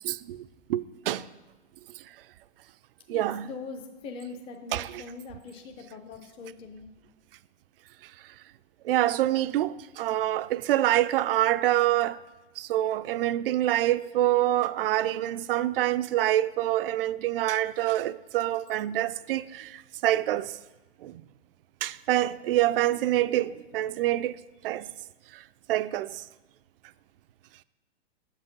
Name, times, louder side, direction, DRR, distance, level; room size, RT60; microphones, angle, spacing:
voice 1, 0.0-1.3 3.1-3.5 4.7-5.0 8.8-12.2 12.6-20.6 21.0-21.2 21.8-24.4 24.6-24.9 25.7-26.2, right 14 dB, 65° right, 0.5 m, -26 dB
voice 2, 3.1-6.9, left 4 dB, 15° left, 0.6 m, -42 dB
8.1 x 7.2 x 5.3 m
hypercardioid pair, 140°, 31 cm